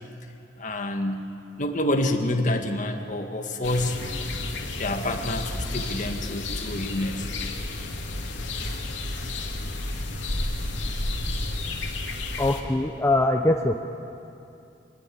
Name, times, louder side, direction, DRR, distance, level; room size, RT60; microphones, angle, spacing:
voice 1, 0.6-1.3 1.6-4.0 4.7-7.3, left 1 dB, 45° left, 5 dB, 1.8 m, -27 dB
sound 1, 3.6-12.6, left 2 dB, 85° left, 2.7 m, -31 dB
voice 2, 12.4-13.8, left 2 dB, 15° left, 3 dB, 0.8 m, -22 dB
25.0 x 20.0 x 8.6 m, 2.8 s
head